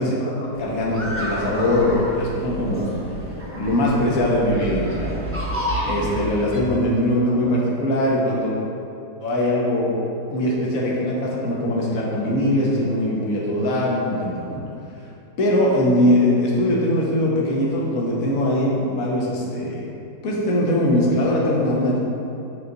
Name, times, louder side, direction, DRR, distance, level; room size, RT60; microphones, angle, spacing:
voice 1, 0.0-2.9 3.5-5.2 5.8-8.6 9.2-10.0 10.3-14.6 15.4-19.8 20.2-22.0, left 1 dB, 55° left, -4 dB, 1.5 m, -21 dB
sound 1, 0.5-6.6, equal, 15° right, 0.6 m, -30 dB
8.0 x 4.1 x 3.9 m, 2.6 s
omnidirectional pair, 2.0 m